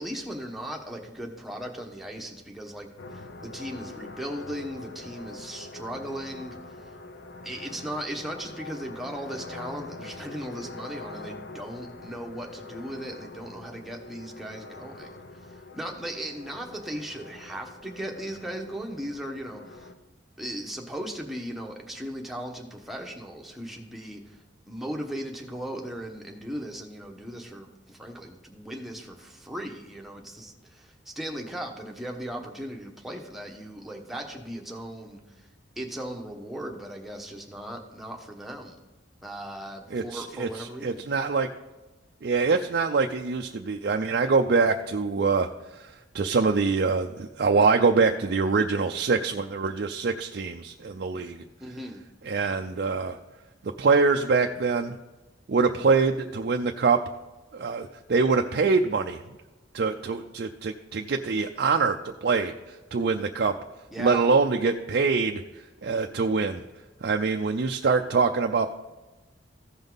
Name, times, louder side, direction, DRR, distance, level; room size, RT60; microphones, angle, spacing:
voice 1, 0.0-7.0 7.4-19.9 20.4-24.4 24.7-35.5 35.8-38.8 39.2-41.0 51.6-52.0 63.9-64.3, equal, ahead, 1 dB, 1.1 m, -37 dB
sound 1, 3.0-19.9, left 3 dB, 60° left, 0.7 m, -44 dB
voice 2, 39.9-41.5 42.2-51.4 52.2-53.2 53.8-55.0 55.5-57.0 57.5-59.2 59.7-62.0 62.2-63.5 64.0-65.4 65.8-66.6 67.0-68.7, right 4 dB, 55° right, 4 dB, 0.4 m, -24 dB
15.0 x 5.3 x 3.9 m, 1.1 s
head